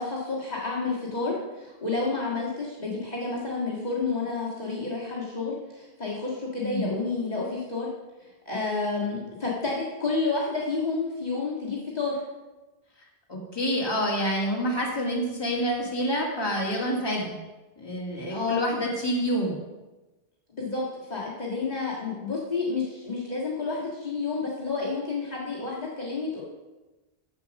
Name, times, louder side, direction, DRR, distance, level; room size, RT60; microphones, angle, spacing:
voice 1, 0.0-7.9 8.5-12.2 18.3-18.6 20.5-26.4, left 4 dB, 40° left, -6 dB, 1.8 m, -30 dB
voice 2, 6.6-6.9 13.3-17.4 17.8-19.6, equal, 20° left, -3 dB, 2.0 m, -27 dB
7.4 x 7.2 x 6.4 m, 1.1 s
omnidirectional pair, 1.1 m